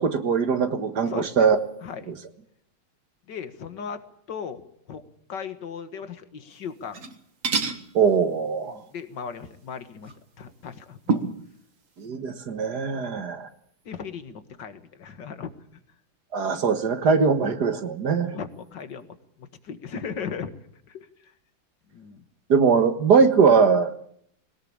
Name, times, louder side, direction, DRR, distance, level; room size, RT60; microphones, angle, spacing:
voice 1, 0.0-1.6 2.1-2.2 7.9-8.8 12.0-13.5 16.3-18.3 22.5-23.9, right 5 dB, 65° right, 8 dB, 2.1 m, -21 dB
voice 2, 1.1-1.5 1.8-2.2 3.3-4.0 4.3-4.6 4.9-5.0 5.3-7.0 8.6-11.2 13.0-13.3 13.9-15.5 18.2-20.5 20.9-21.3 21.9-22.2, left 6 dB, 75° left, 9 dB, 2.3 m, -37 dB
sound 1, 6.8-7.2 7.4-7.8 10.0-10.1 11.1-11.4, right 4 dB, 45° right, 2.0 m, -26 dB
21.5 x 18.5 x 8.7 m, 0.68 s
omnidirectional pair, 1.9 m